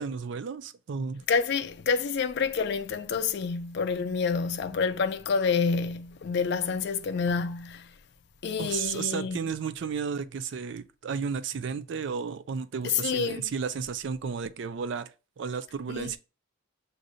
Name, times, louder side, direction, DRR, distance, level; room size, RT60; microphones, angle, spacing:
voice 1, 0.0-1.2 8.6-15.1 15.4-16.2, right 6 dB, 60° right, 0.4 m, -33 dB
voice 2, 1.3-7.9 8.4-9.4 12.8-13.4 15.9-16.2, left 5 dB, 55° left, 0.4 m, -28 dB
6.2 x 2.6 x 2.6 m
head